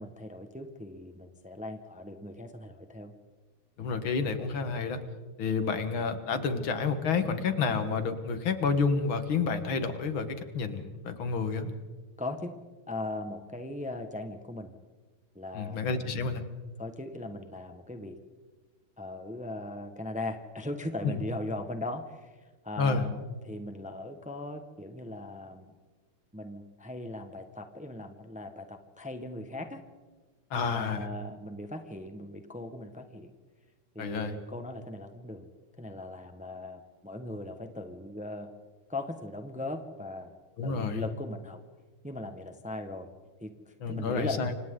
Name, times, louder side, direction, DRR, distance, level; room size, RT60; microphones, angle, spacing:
voice 1, 0.0-3.1 12.2-12.5 12.9-14.7 15.3-16.3 16.8-18.2 19.0-22.3 22.6-25.7 26.3-29.8 30.5-33.3 33.9-35.5 35.8-38.5 38.9-40.3 40.6-41.6 42.0-43.1 43.4-44.4, left 1 dB, 5° right, 6 dB, 1.2 m, -39 dB
voice 2, 3.8-5.0 5.4-11.7 15.5-16.4 21.0-21.2 22.8-23.0 30.5-31.1 34.0-34.4 40.6-41.0 43.8-44.5, left 5 dB, 75° left, 8 dB, 2.4 m, -29 dB
29.0 x 25.5 x 3.9 m, 1.3 s
omnidirectional pair, 2.3 m